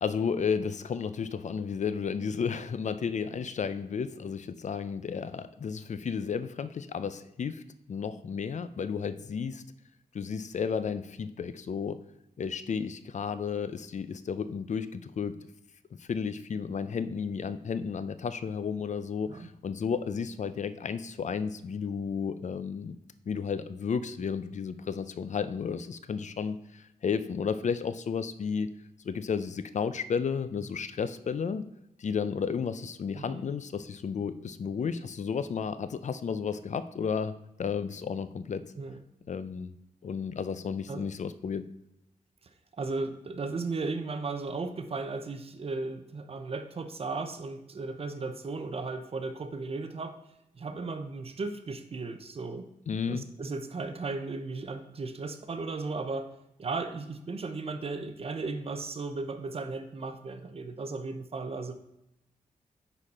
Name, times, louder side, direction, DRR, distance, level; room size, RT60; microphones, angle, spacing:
voice 1, 0.0-7.6 7.9-9.6 10.1-12.0 12.4-15.4 16.0-23.0 23.3-28.7 29.0-31.6 32.0-37.3 37.6-38.6 39.3-39.7 40.0-41.6 52.9-53.2, left 6 dB, 55° left, 13 dB, 0.5 m, -32 dB
voice 2, 42.7-50.2 50.5-52.7 53.1-56.3 56.6-61.7, right 3 dB, 40° right, 8 dB, 0.8 m, -35 dB
9.9 x 4.2 x 4.2 m, 0.86 s
wide cardioid pair, 90°, 15 cm